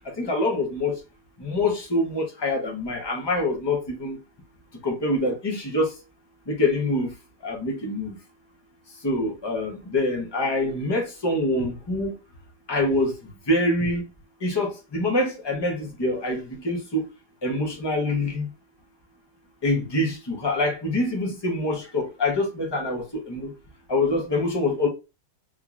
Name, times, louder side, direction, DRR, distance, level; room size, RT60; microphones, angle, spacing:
voice 1, 0.0-1.0 1.4-4.2 4.8-6.0 6.5-7.1 7.4-8.1 9.0-12.1 12.7-13.1 13.5-14.0 14.4-17.1 17.4-18.5 19.6-23.5 23.9-24.9, left 2 dB, 25° left, 0.6 m, -25 dB
3.8 x 3.0 x 2.4 m
omnidirectional pair, 1.9 m